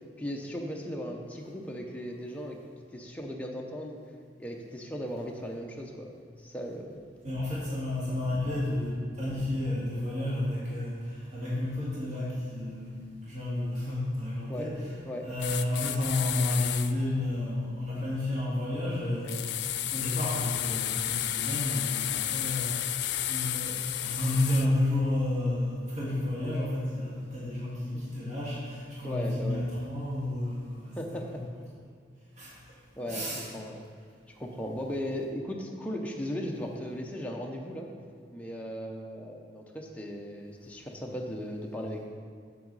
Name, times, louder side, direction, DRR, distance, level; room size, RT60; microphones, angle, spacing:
voice 1, 0.2-2.6 2.9-4.0 4.4-6.1 6.4-7.0 14.5-14.7 15.1-15.3 27.9-28.0 29.0-29.7 31.0-31.5 33.0-33.8 34.4-37.9 38.3-42.0, equal, 10° left, 0 dB, 0.7 m, -37 dB
voice 2, 7.2-14.9 15.2-19.6 19.9-22.9 23.3-31.4 32.4-32.6 33.1-33.5, left 1 dB, 45° right, -8 dB, 1.9 m, -31 dB
sound 1, 15.4-16.9 19.3-24.7, left 12 dB, 70° left, 0.4 m, -32 dB
7.6 x 7.3 x 4.0 m, 2.1 s
head